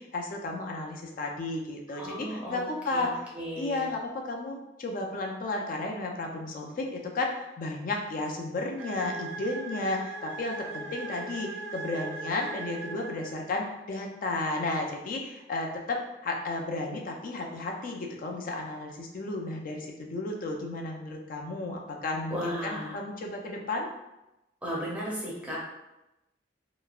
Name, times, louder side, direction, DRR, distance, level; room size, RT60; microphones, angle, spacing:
voice 1, 0.0-3.1 3.6-23.9, left 2 dB, 50° left, 1 dB, 0.4 m, -33 dB
voice 2, 1.9-2.6 2.9-3.9 22.3-23.0 24.6-25.6, equal, 10° right, -6 dB, 0.6 m, -35 dB
sound 1, 8.8-13.7, right 3 dB, 70° right, 0.3 m, -39 dB
3.0 x 2.2 x 2.3 m, 0.93 s
head